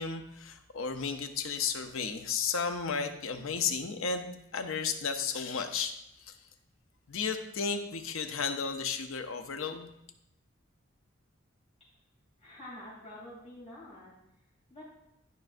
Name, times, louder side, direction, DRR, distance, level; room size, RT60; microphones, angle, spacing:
voice 1, 0.0-5.9 6.3-6.4 7.1-9.9, left 5 dB, 80° left, 7 dB, 0.7 m, -33 dB
voice 2, 12.4-14.1 14.7-14.8, left 1 dB, 35° left, -9 dB, 2.9 m, -47 dB
11.0 x 5.3 x 2.6 m, 0.83 s
head